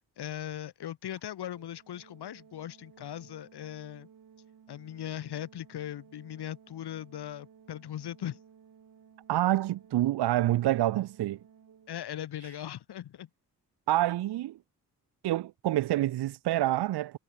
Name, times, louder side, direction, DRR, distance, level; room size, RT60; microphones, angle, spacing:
voice 1, 0.2-4.1 4.7-8.4 11.9-13.3, left 11 dB, 85° left, 3.1 m, -39 dB
Organ, 1.5-12.4, right 7 dB, 60° right, 4.5 m, -57 dB
voice 2, 9.3-11.4 13.9-14.6 15.2-17.2, right 14 dB, 85° right, 0.8 m, -27 dB
cardioid pair, 95°, 38 cm